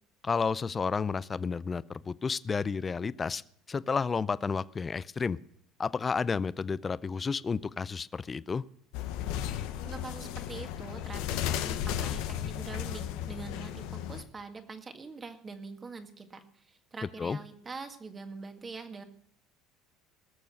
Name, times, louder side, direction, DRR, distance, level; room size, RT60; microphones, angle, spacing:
voice 1, 0.2-3.4 3.7-5.4 5.8-8.6 17.2-17.4, left 5 dB, 25° left, 19 dB, 0.5 m, -31 dB
sound 1, 8.9-14.2, left 10 dB, 75° left, 1.0 m, -34 dB
voice 2, 9.8-19.0, right 4 dB, 25° right, 7 dB, 1.8 m, -44 dB
19.5 x 6.9 x 6.4 m, 0.68 s
supercardioid pair, 90°, 0 cm